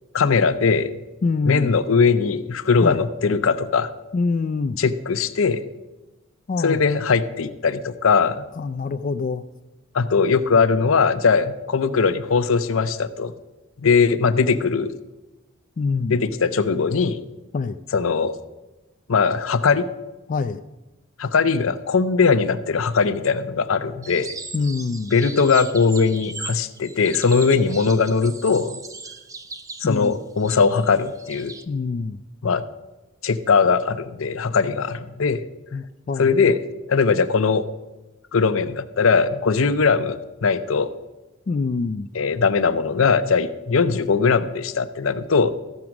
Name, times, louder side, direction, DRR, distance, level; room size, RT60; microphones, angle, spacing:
voice 1, 0.1-0.9 1.4-3.9 4.8-5.6 6.6-8.4 9.9-13.3 13.8-14.9 16.1-17.2 17.9-18.4 19.1-19.9 21.2-24.4 25.1-28.7 29.8-31.6 32.4-32.6 33.2-35.4 36.2-36.6 36.9-37.6 38.3-40.9 42.1-45.6, left 5 dB, 80° left, 11 dB, 0.6 m, -20 dB
voice 2, 1.2-1.7 2.8-3.0 4.1-4.8 6.5-6.8 8.6-9.4 15.8-16.2 17.5-17.8 20.3-20.6 24.5-25.1 29.8-30.1 31.7-32.2 35.7-36.3 41.5-42.1, left 4 dB, 40° left, 9 dB, 0.3 m, -25 dB
sound 1, 24.0-31.7, right 4 dB, 15° right, 0.5 m, -38 dB
14.0 x 6.2 x 5.9 m, 1.1 s
head